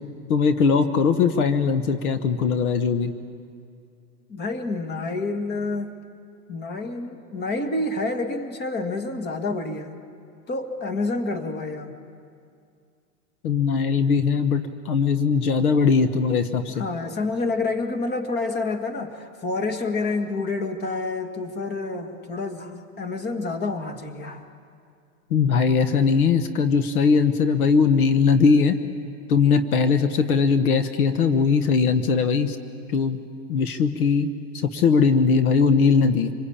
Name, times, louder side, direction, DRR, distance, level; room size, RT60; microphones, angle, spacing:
voice 1, 0.3-3.1 13.4-16.8 25.3-28.8 29.3-32.6 32.9-33.2 33.5-34.3 34.5-36.3, left 5 dB, 75° left, 9 dB, 1.4 m, -20 dB
voice 2, 4.3-5.9 6.5-9.9 10.5-11.9 16.7-24.4, left 3 dB, 20° left, 7 dB, 1.8 m, -28 dB
26.0 x 20.5 x 8.7 m, 2.3 s
hypercardioid pair, 130°, 44 cm